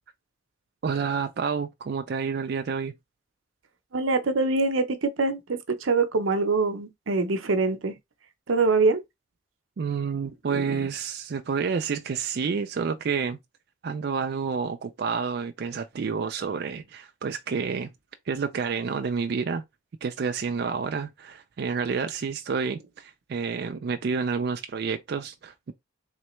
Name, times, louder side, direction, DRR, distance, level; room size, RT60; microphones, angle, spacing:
voice 1, 0.8-2.9 9.8-13.4 13.8-17.9 18.3-19.6 20.0-25.7, right 5 dB, 55° right, 0.4 m, -29 dB
voice 2, 3.9-7.9 8.5-9.0 10.5-10.8, right 3 dB, 90° right, 0.7 m, -24 dB
3.7 x 3.2 x 3.1 m
head